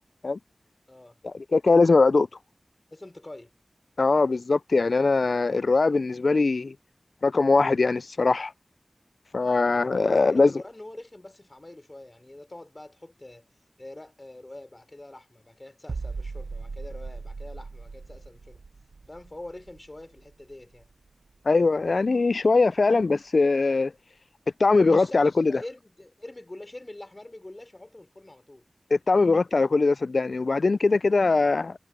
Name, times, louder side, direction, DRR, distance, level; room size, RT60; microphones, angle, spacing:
voice 1, 0.9-1.2 2.9-3.5 10.0-13.5 13.8-18.6 19.1-20.9 24.7-28.6, left 1 dB, 35° left, 3.8 m, -44 dB
voice 2, 1.5-2.3 4.0-6.7 7.2-8.5 9.3-10.5 21.5-23.9 24.6-25.5 28.9-31.7, left 3 dB, 70° left, 0.3 m, -21 dB
sound 1, 15.9-21.6 21.8-22.1, right 4 dB, 75° right, 0.5 m, -39 dB
cardioid pair, 45°, 0 cm